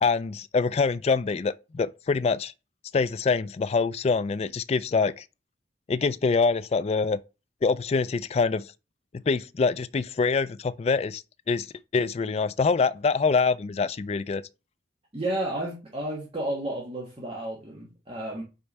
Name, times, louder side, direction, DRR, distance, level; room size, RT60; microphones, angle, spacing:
voice 1, 0.0-2.5 2.9-5.2 5.9-7.2 7.6-8.7 9.3-11.2 11.5-11.7 11.9-14.4, left 4 dB, 35° left, 0.3 m, -25 dB
voice 2, 15.1-18.4, right 1 dB, 30° right, 1.4 m, -32 dB
5.2 x 4.5 x 4.1 m
head